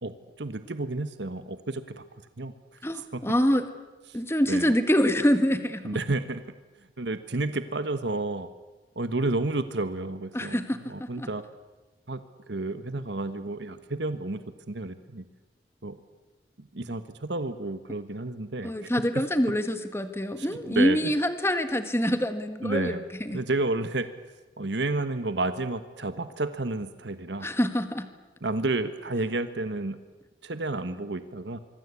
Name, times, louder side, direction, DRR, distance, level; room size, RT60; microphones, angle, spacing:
voice 1, 0.0-2.0 2.4-2.5 2.9-3.2 4.1-4.2 4.5-4.7 5.8-6.4 7.0-8.5 8.9-11.4 12.1-12.2 12.5-14.4 14.7-15.2 15.8-16.0 16.6-18.9 20.4-21.1 22.6-23.0 23.3-24.1 24.6-27.5 28.4-30.0 30.4-31.6, right 2 dB, 75° right, 10 dB, 1.3 m, -31 dB
voice 2, 2.8-3.6 4.1-6.0 10.3-11.3 18.6-23.0 23.3-23.4 27.4-28.1, equal, 15° left, 9 dB, 1.6 m, -25 dB
25.5 x 24.5 x 8.4 m, 1.2 s
head